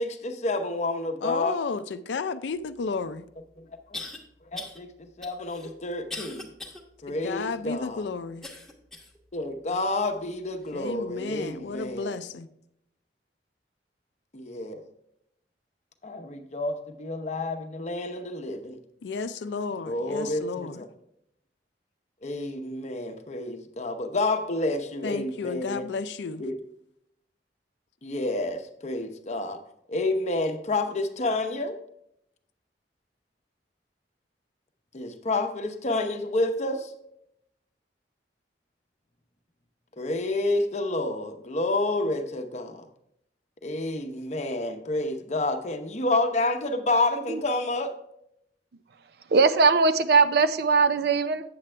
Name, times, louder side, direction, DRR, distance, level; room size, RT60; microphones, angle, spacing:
voice 1, 0.0-1.6 4.5-6.5 7.0-8.1 9.3-12.2 14.3-14.8 16.0-18.8 19.8-20.9 22.2-25.9 26.4-26.6 28.0-29.6 29.9-31.7 34.9-36.9 40.0-42.8 43.6-47.9, left 2 dB, 40° left, 6 dB, 0.8 m, -29 dB
voice 2, 1.2-3.2 7.1-8.4 10.7-12.5 19.0-20.8 25.0-26.4, left 4 dB, 85° left, 12 dB, 0.4 m, -32 dB
sound 1, 2.9-3.0 3.9-4.2 4.5-4.8 5.2-6.8 7.3-7.4 8.4-9.2 9.7-9.9 10.6-10.7, left 2 dB, 5° left, 1.0 m, -40 dB
voice 3, 49.3-51.4, right 4 dB, 60° right, 12 dB, 0.5 m, -20 dB
8.6 x 7.4 x 3.3 m, 0.77 s
head